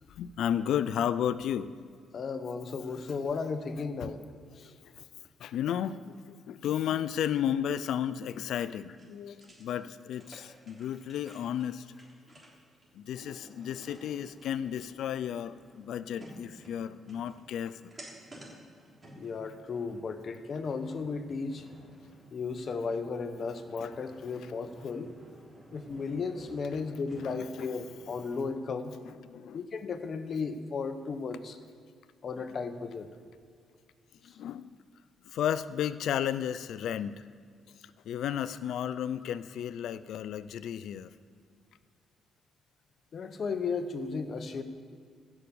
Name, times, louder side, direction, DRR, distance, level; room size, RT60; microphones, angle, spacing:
voice 1, 0.1-1.7 3.1-3.2 4.0-4.1 4.8-5.0 5.4-11.9 12.9-17.8 23.8-23.9 27.2-27.7 29.0-29.6 34.2-34.7 35.2-37.2 38.0-41.1, left 10 dB, 75° left, 15 dB, 0.4 m, -33 dB
voice 2, 2.1-4.2 4.6-4.8 19.2-21.7 22.3-25.1 25.7-28.9 29.5-31.6 32.2-33.1 34.3-34.4 43.1-44.6, left 4 dB, 50° left, 9 dB, 1.0 m, -35 dB
sound 1, 8.9-28.4, right 1 dB, 30° right, 3.4 m, -53 dB
15.0 x 6.1 x 6.9 m, 2.2 s
cardioid pair, 90°, 0 cm